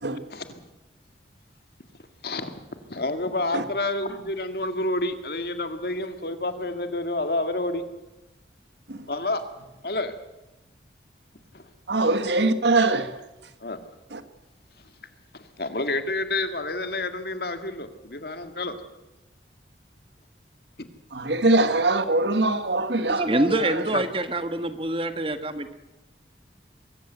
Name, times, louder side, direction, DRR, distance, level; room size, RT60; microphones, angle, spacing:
voice 1, 2.2-2.5 2.9-7.8 9.1-9.4 9.8-10.1 11.5-11.6 13.6-13.8 15.3-18.7 23.9-24.0, left 2 dB, 60° left, 2.0 m, -29 dB
voice 2, 11.9-13.2 14.1-14.2 21.1-24.0, right 2 dB, 80° right, 1.5 m, -23 dB
voice 3, 23.2-25.7, right 1 dB, 30° right, 1.5 m, -25 dB
24.0 x 14.5 x 8.0 m
head